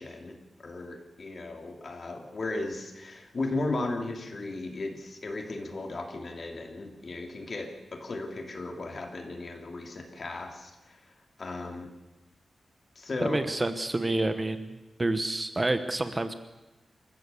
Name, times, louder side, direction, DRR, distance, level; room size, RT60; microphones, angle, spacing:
voice 1, 0.0-11.0 11.4-11.9 12.9-13.4, left 2 dB, 45° left, 3 dB, 3.0 m, -36 dB
voice 2, 13.2-14.7 15.0-16.3, right 2 dB, 20° right, 10 dB, 1.0 m, -28 dB
27.5 x 15.0 x 7.0 m, 1.1 s
wide cardioid pair, 145°, 0 cm